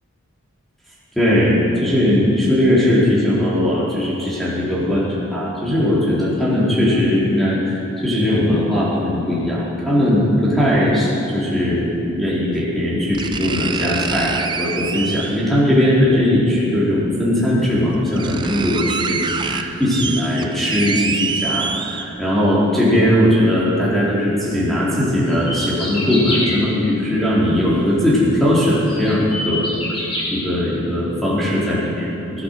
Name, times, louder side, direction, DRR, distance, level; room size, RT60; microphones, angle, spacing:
voice 1, 1.2-11.9 12.2-29.7 30.3-32.4, left 1 dB, ahead, -8 dB, 4.0 m, -19 dB
sound 1, 10.7-10.8 12.3-12.4 13.1-15.5 16.9-17.0 17.6-17.7 17.9-22.4 22.8-22.9, right 5 dB, 20° right, 0.5 m, -26 dB
sound 2, 25.3-26.5 28.2-28.3 28.9-30.3, left 1 dB, 25° left, 4.1 m, -25 dB
20.0 x 9.7 x 6.6 m, 2.8 s
head